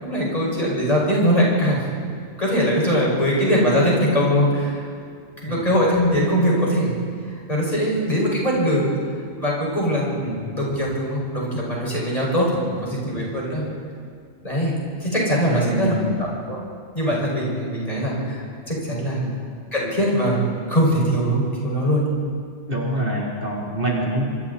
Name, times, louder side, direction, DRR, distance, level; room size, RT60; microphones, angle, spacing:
voice 1, 0.0-1.8 2.4-4.9 5.4-7.0 7.5-8.9 9.4-12.5 12.8-13.7 14.4-14.7 15.0-16.6 16.9-19.2 19.7-22.1, equal, 35° left, -4 dB, 6.0 m, -21 dB
voice 2, 15.5-16.3 19.2-19.4 22.7-24.2, right 1 dB, 50° right, -4 dB, 3.7 m, -26 dB
27.0 x 24.0 x 4.2 m, 2.2 s
omnidirectional pair, 1.2 m